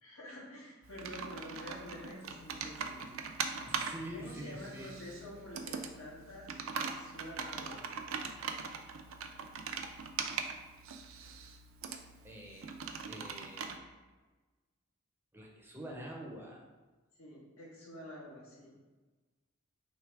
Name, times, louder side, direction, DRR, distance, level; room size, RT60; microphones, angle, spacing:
voice 1, 0.0-3.1 4.1-6.5 6.8-7.8 17.2-18.7, left 1 dB, 85° left, -5 dB, 1.4 m, -48 dB
Computer keyboard, 0.8-13.8, right 5 dB, 75° right, 0.4 m, -41 dB
voice 2, 3.7-5.0 12.2-12.7 13.1-13.9 15.3-16.6, right 1 dB, 10° right, -1 dB, 0.5 m, -46 dB
3.3 x 3.2 x 4.6 m, 1.3 s
head